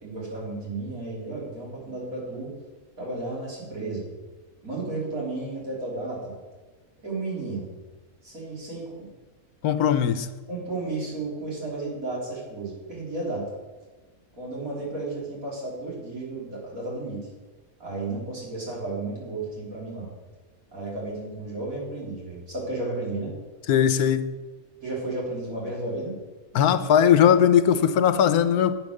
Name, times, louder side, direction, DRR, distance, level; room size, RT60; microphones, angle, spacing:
voice 1, 0.0-2.5 3.0-4.1 4.6-6.3 7.0-7.7 8.2-9.1 10.5-13.5 14.4-17.3 17.8-20.1 20.7-23.4 24.8-26.1, right 2 dB, 70° right, -4 dB, 4.0 m, -33 dB
voice 2, 9.6-10.3 23.7-24.3 26.5-28.8, left 9 dB, 90° left, 11 dB, 1.3 m, -19 dB
10.5 x 8.2 x 6.6 m, 1.3 s
omnidirectional pair, 1.5 m